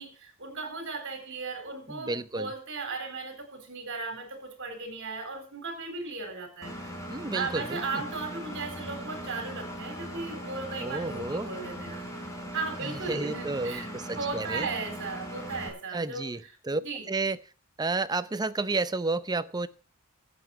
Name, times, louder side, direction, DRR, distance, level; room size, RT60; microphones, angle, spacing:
voice 1, 0.0-7.0 7.3-12.1 12.5-13.9 14.1-16.3 16.7-17.1, right 4 dB, 60° right, 4.0 m, -36 dB
voice 2, 1.9-2.5 7.1-8.0 10.8-11.5 12.8-14.7 15.9-16.8 17.1-17.4 17.8-19.7, right 3 dB, 20° right, 0.6 m, -31 dB
Engine, 6.6-15.7, equal, 15° left, 3.5 m, -39 dB
12.5 x 8.1 x 5.9 m
head